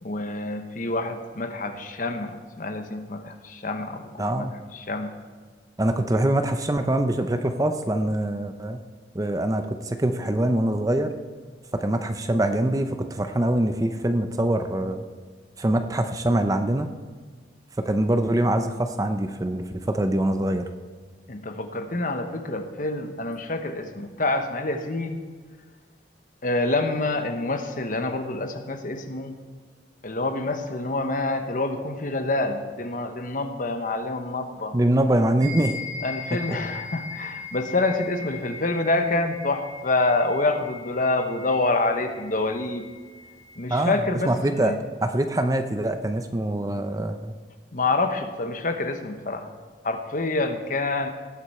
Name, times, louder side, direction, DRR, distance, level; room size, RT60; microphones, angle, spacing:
voice 1, 0.0-5.1 21.3-25.2 26.4-29.4 30.0-34.8 36.0-42.9 43.6-44.8 47.7-49.5 49.8-51.1, left 2 dB, 45° left, 7 dB, 1.0 m, -27 dB
voice 2, 4.2-4.5 5.8-8.8 9.1-11.1 11.7-15.1 15.6-16.9 17.8-20.7 34.7-35.7 36.3-36.6 43.7-44.7 45.0-47.3, right 1 dB, 20° right, 7 dB, 0.6 m, -24 dB
sound 1, 35.4-44.1, left 4 dB, 40° right, 1.9 m, -40 dB
18.5 x 8.0 x 4.3 m, 1.5 s
head